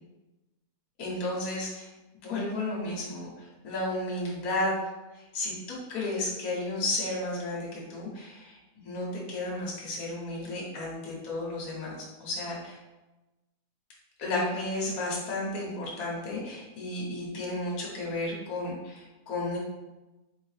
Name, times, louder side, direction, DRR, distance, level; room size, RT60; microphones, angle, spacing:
voice 1, 1.0-1.9 2.2-4.7 5.1-11.9 12.2-12.8 14.2-19.6, left 2 dB, 65° left, -4 dB, 1.5 m, -33 dB
3.7 x 3.5 x 3.2 m, 1.1 s
omnidirectional pair, 1.7 m